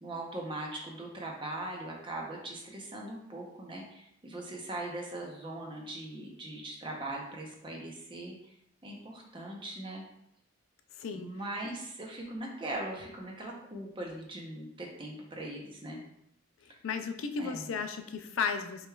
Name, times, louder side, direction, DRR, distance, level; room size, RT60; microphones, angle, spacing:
voice 1, 0.0-8.5 8.8-10.0 11.1-16.0 17.4-17.7, right 1 dB, 25° right, 0 dB, 0.7 m, -40 dB
voice 2, 11.0-11.3 16.6-18.9, left 5 dB, 80° left, 7 dB, 0.4 m, -34 dB
5.0 x 3.2 x 2.3 m, 0.77 s
head